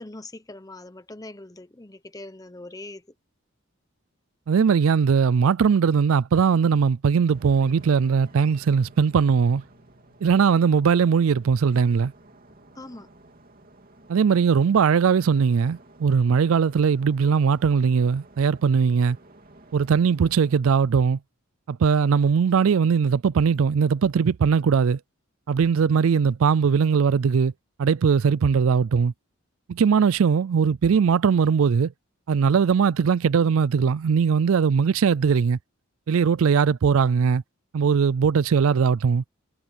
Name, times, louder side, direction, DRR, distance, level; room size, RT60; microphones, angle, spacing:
voice 1, 0.0-3.1 12.7-13.1, left 2 dB, 15° left, 1.0 m, -41 dB
voice 2, 4.5-9.6 10.2-12.1 14.1-19.2 19.7-21.2 21.7-25.0 25.5-27.5 27.8-29.1 29.7-31.9 32.3-35.6 36.1-37.4 37.7-39.2, right 6 dB, 75° right, 0.4 m, -20 dB
sound 1, 7.3-20.6, right 2 dB, 40° right, 2.9 m, -53 dB
sound 2, 7.6-20.1, equal, 55° left, 4.7 m, -60 dB
head